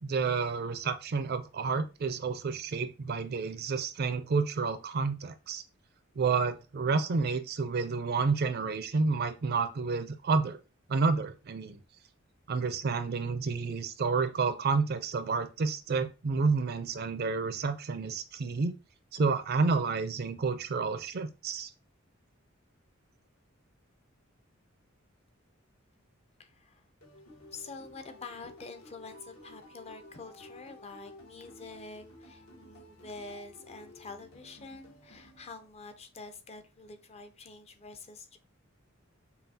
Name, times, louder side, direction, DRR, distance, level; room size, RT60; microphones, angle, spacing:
voice 1, 0.0-5.6 6.2-10.6 10.9-11.8 12.5-18.7 19.1-21.7, right 4 dB, 50° right, 0.4 m, -30 dB
voice 2, 26.4-26.8 27.5-38.4, left 3 dB, 30° left, 0.5 m, -47 dB
sound 1, 27.0-35.9, left 1 dB, 80° left, 1.4 m, -53 dB
5.6 x 2.3 x 2.7 m
head